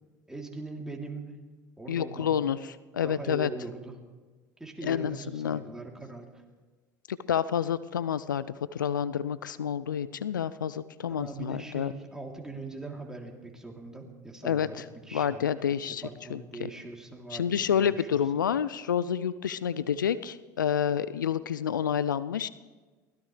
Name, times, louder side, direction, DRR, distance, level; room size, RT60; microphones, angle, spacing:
voice 1, 0.3-1.3 1.8-2.4 3.0-3.9 4.6-6.4 11.1-15.5 16.0-18.1, right 3 dB, 5° right, 0 dB, 3.3 m, -41 dB
voice 2, 1.9-3.5 4.8-5.6 7.1-8.5 8.7-11.9 14.4-14.7 15.1-16.0 16.3-16.7 17.3-22.5, left 8 dB, 90° left, 17 dB, 0.4 m, -29 dB
23.0 x 17.5 x 3.4 m, 1.3 s
hypercardioid pair, 75°, 10 cm